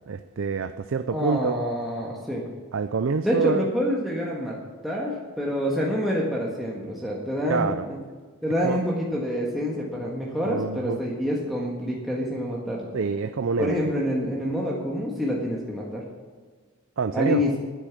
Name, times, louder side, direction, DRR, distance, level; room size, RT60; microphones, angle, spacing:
voice 1, 0.1-1.5 2.7-3.7 7.5-7.8 8.6-8.8 10.4-11.0 12.9-13.8 17.0-17.4, right 5 dB, 60° right, 10 dB, 0.4 m, -26 dB
voice 2, 1.1-2.5 3.2-4.6 4.8-8.0 8.4-12.9 13.6-16.0 17.1-17.5, equal, ahead, -5 dB, 1.6 m, -27 dB
10.0 x 9.9 x 6.1 m, 1.5 s
head